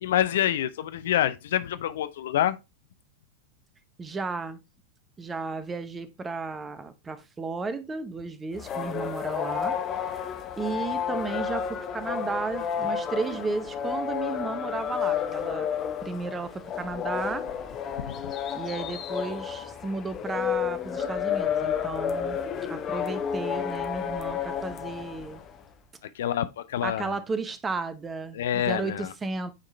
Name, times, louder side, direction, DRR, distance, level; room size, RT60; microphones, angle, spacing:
voice 1, 0.0-2.6 18.1-18.3 26.1-27.2 28.3-29.1, left 11 dB, 60° left, 0.4 m, -27 dB
voice 2, 4.0-4.6 5.2-10.2 10.6-17.5 18.5-22.4 22.7-25.4 26.8-29.5, right 3 dB, 15° right, 0.8 m, -34 dB
sound 1, 8.5-25.6, left 8 dB, 30° left, 0.8 m, -31 dB
9.0 x 3.8 x 3.2 m
figure-of-eight pair, 90°, 0 cm